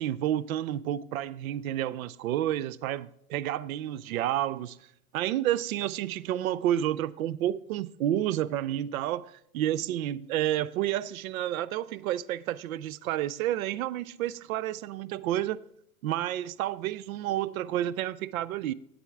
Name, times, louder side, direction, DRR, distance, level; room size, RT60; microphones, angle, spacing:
voice 1, 0.0-4.8 5.1-9.2 9.5-15.6 16.0-18.7, right 12 dB, 65° right, 0.5 m, -30 dB
9.8 x 8.2 x 3.5 m
hypercardioid pair, 110°, 45 cm